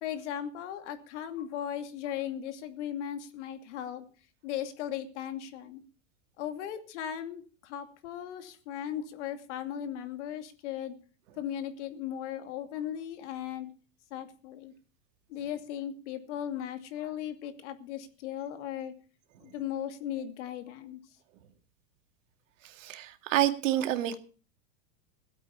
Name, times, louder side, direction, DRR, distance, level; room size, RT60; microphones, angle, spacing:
voice 1, 0.0-4.0 4.4-5.8 6.4-10.9 11.3-13.7 14.1-14.7 15.3-18.9 19.4-21.0, left 10 dB, 70° left, 8 dB, 2.6 m, -37 dB
voice 2, 22.6-24.2, right 13 dB, 80° right, 8 dB, 2.2 m, -28 dB
17.0 x 8.3 x 7.1 m, 0.39 s
supercardioid pair, 160°, 38 cm